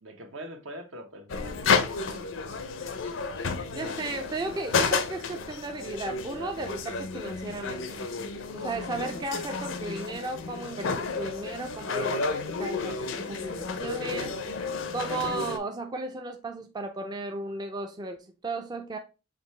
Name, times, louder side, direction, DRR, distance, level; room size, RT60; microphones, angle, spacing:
voice 1, 0.0-2.7, right 1 dB, 75° right, 0.9 m, -44 dB
sound 1, 1.3-15.6, left 4 dB, 80° left, 0.6 m, -31 dB
voice 2, 3.7-7.9 8.5-12.3 12.6-13.0 13.3-14.4 14.9-19.0, right 2 dB, 20° right, 0.4 m, -35 dB
4.9 x 2.8 x 3.1 m
head